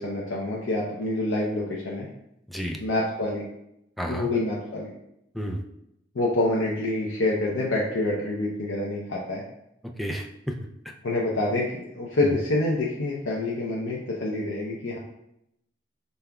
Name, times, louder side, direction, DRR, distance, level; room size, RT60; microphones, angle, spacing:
voice 1, 0.0-2.1 2.8-3.4 4.1-4.9 6.1-9.4 11.0-15.0, left 2 dB, 90° left, -4 dB, 0.7 m, -27 dB
voice 2, 2.5-2.8 4.0-4.3 5.3-5.6 10.0-10.5, equal, ahead, 2 dB, 0.3 m, -31 dB
5.3 x 3.4 x 2.3 m, 0.80 s
head